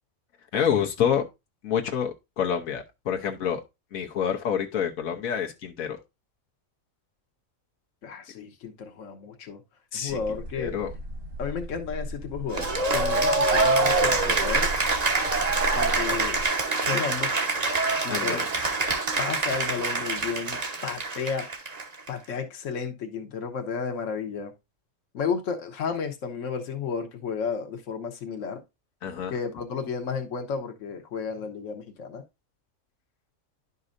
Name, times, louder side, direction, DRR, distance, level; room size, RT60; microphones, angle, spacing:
voice 1, 0.5-1.3 1.6-3.6 3.9-6.0 9.9-10.2 10.6-10.9 18.1-18.5 29.0-29.3, left 8 dB, 90° left, 1.4 m, -27 dB
voice 2, 8.0-9.6 9.9-10.8 11.4-14.7 15.7-16.4 16.9-17.5 18.0-18.4 19.2-21.5 22.1-24.5 25.1-28.6 29.3-32.2, left 6 dB, 65° left, 1.3 m, -32 dB
sound 1, 10.1-16.4, right 1 dB, 70° right, 1.4 m, -36 dB
Cheering / Applause, 12.5-22.1, right 3 dB, 30° right, 1.0 m, -25 dB
11.0 x 5.4 x 2.5 m
omnidirectional pair, 1.4 m